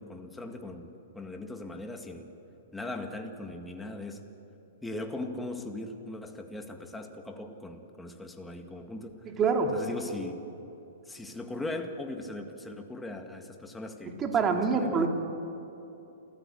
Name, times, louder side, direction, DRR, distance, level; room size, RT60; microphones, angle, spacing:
voice 1, 0.0-2.3 2.7-4.3 4.8-9.2 9.7-10.4 11.1-15.1, left 2 dB, 5° left, 4 dB, 1.8 m, -39 dB
voice 2, 9.3-9.7 14.2-15.1, right 5 dB, 20° right, 3 dB, 2.2 m, -25 dB
28.0 x 15.0 x 8.8 m, 2.9 s
hypercardioid pair, 140°, 0 cm